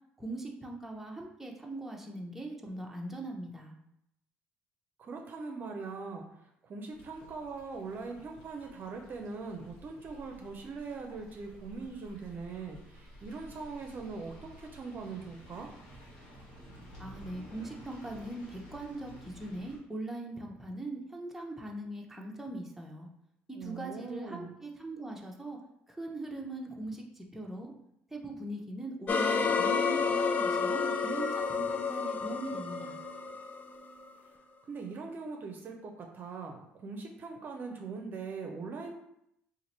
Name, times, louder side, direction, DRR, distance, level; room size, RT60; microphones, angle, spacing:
voice 1, 0.2-3.7 17.0-23.1 23.5-25.6 25.9-27.7 28.1-33.0, right 1 dB, 5° right, 0 dB, 0.7 m, -41 dB
voice 2, 5.0-15.7 23.5-24.5 34.2-34.3 34.7-38.9, right 4 dB, 45° right, 3 dB, 0.5 m, -41 dB
sound 1, 6.9-19.8, equal, 85° left, 1.4 m, -53 dB
sound 2, 29.1-34.1, left 5 dB, 35° left, 0.3 m, -30 dB
2.8 x 2.5 x 4.1 m, 0.77 s
supercardioid pair, 85°, 5 cm